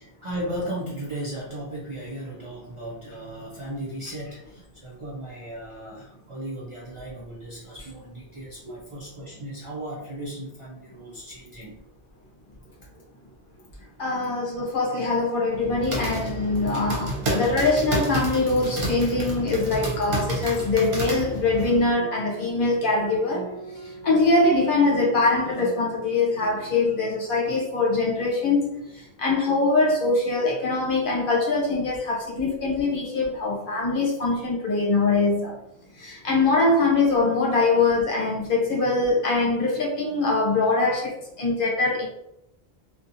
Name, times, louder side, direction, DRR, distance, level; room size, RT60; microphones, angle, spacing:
voice 1, 0.0-11.8 12.8-12.9, right 1 dB, 45° right, -5 dB, 0.4 m, -36 dB
voice 2, 14.0-23.5 24.0-28.8 29.2-35.5 36.0-42.1, left 3 dB, 60° left, -2 dB, 0.9 m, -23 dB
sound 1, 15.5-21.8, right 1 dB, 60° right, 0.9 m, -30 dB
sound 2, 22.0-26.9, right 3 dB, 25° left, 0.9 m, -41 dB
2.7 x 2.2 x 2.5 m, 0.83 s
omnidirectional pair, 1.0 m